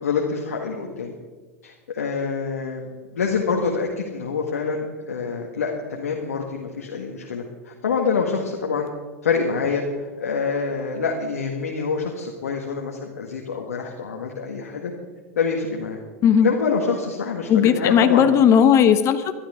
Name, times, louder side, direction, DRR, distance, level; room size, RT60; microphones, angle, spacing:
voice 1, 0.0-1.1 1.6-2.8 3.2-8.9 9.2-14.9 15.4-16.0 16.4-18.3, left 5 dB, 85° left, 0 dB, 1.8 m, -26 dB
voice 2, 17.5-19.3, left 8 dB, 40° left, 10 dB, 1.2 m, -16 dB
21.0 x 12.5 x 3.8 m, 1.4 s
hypercardioid pair, 100°, 8 cm